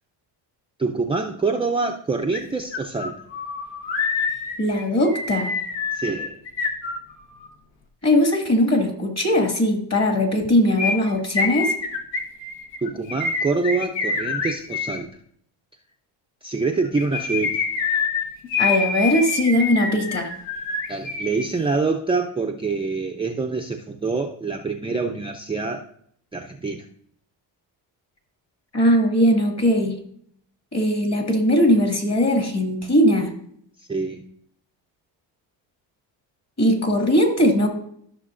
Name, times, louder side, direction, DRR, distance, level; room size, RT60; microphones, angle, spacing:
voice 1, 0.8-3.2 5.9-6.4 12.8-15.1 16.4-17.6 20.9-25.9 26.3-26.9 33.9-34.2, right 4 dB, 10° right, 3 dB, 0.5 m, -25 dB
sound 1, 2.3-2.4 2.7-7.5 10.8-15.0 16.8-21.4 21.7-21.8, left 4 dB, 65° left, 1.5 m, -26 dB
voice 2, 4.6-5.5 8.0-11.7 18.6-20.3 28.7-29.9 30.7-33.3 36.6-37.7, equal, 35° left, 3 dB, 2.3 m, -19 dB
13.5 x 6.3 x 2.5 m, 0.65 s
cardioid pair, 85°, 47 cm